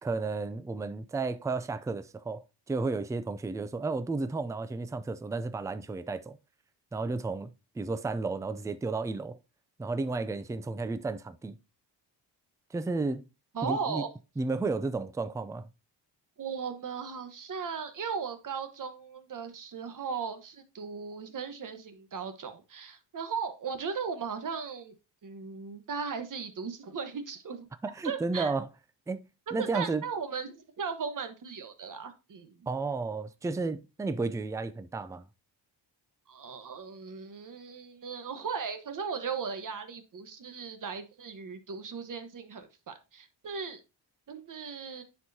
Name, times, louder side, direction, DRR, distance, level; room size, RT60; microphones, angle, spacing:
voice 1, 0.0-2.4 2.7-6.4 6.9-7.5 7.8-9.4 9.8-11.6 12.7-13.2 13.6-14.0 14.4-15.7 27.9-28.7 29.1-29.2 29.5-30.0 32.7-35.2, right 3 dB, 10° right, 0.4 m, -32 dB
voice 2, 13.5-14.1 16.4-24.9 25.2-27.7 28.0-28.5 29.6-32.7 36.3-43.8 44.3-45.0, right 6 dB, 45° right, 1.3 m, -37 dB
9.9 x 4.6 x 2.8 m
wide cardioid pair, 145°, 45 cm